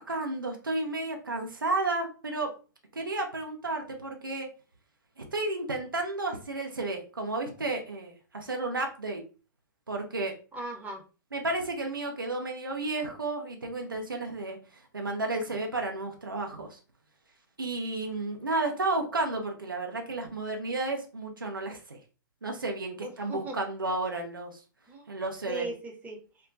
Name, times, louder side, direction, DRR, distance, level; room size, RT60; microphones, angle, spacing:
voice 1, 0.1-2.5 2.9-4.5 5.2-9.2 9.9-10.3 11.3-14.6 14.9-16.8 17.6-22.0 22.4-24.6 25.1-25.7, right 2 dB, 85° right, 2 dB, 0.7 m, -32 dB
voice 2, 10.5-11.0 23.0-23.6 24.9-25.0 25.5-26.2, right 2 dB, 15° right, 0 dB, 0.9 m, -38 dB
2.3 x 2.2 x 3.8 m, 0.34 s
figure-of-eight pair, 100°, 11 cm